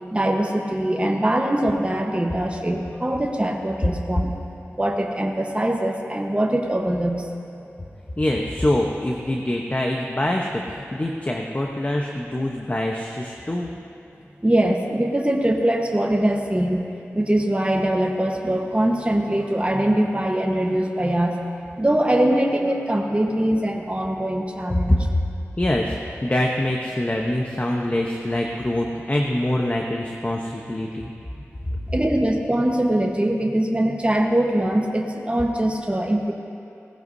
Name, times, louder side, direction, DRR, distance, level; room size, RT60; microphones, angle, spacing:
voice 1, 0.1-4.3 4.8-7.3 14.4-16.8 17.1-21.4 21.8-25.0 31.9-36.3, right 1 dB, 25° right, 0 dB, 1.2 m, -22 dB
voice 2, 8.2-13.7 24.7-25.2 25.6-31.1 31.7-31.8, left 1 dB, 30° left, 0 dB, 1.0 m, -24 dB
18.5 x 15.0 x 2.7 m, 2.7 s
cardioid pair, 40°, 5 cm